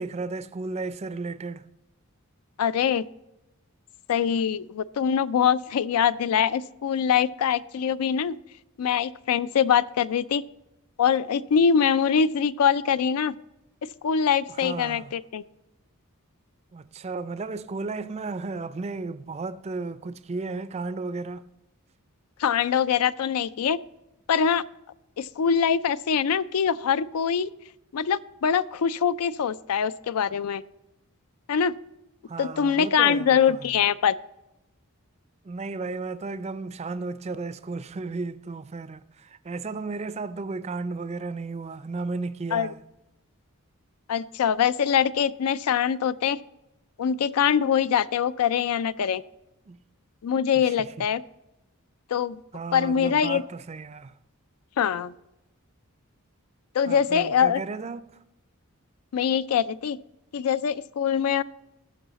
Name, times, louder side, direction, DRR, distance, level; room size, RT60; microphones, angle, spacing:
voice 1, 0.0-1.7 14.5-15.2 16.7-21.4 32.3-33.7 35.4-42.8 49.7-49.8 50.6-51.1 52.5-54.2 56.9-58.2, right 3 dB, 30° right, 0.4 m, -34 dB
voice 2, 2.6-3.0 4.1-8.3 8.8-10.4 11.0-13.3 14.0-15.4 22.4-23.8 24.3-24.6 25.2-27.5 27.9-30.6 31.5-31.7 32.4-34.1 42.5-42.7 44.1-46.4 47.0-49.2 50.2-51.2 52.1-52.4 52.7-53.4 54.8-55.1 56.7-57.6 59.1-60.0 60.3-61.4, left 7 dB, 85° left, 0.4 m, -23 dB
14.5 x 5.5 x 4.0 m
head